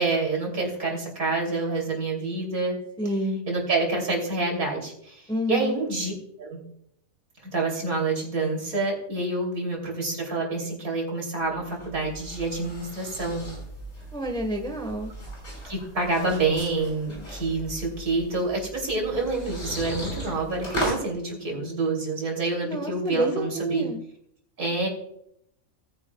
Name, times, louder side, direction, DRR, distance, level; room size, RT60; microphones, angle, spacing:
voice 1, 0.0-2.8 3.5-5.2 5.5-6.1 6.4-6.6 7.5-13.5 15.6-23.9 24.6-24.9, right 3 dB, 90° right, 0 dB, 3.5 m, -27 dB
voice 2, 3.0-3.4 5.3-5.8 14.1-15.1 22.6-24.0, right 1 dB, 5° left, 4 dB, 1.1 m, -28 dB
sound 1, 11.4-21.0, equal, 85° left, 5.4 m, -38 dB
18.5 x 9.8 x 2.3 m, 0.73 s
omnidirectional pair, 1.5 m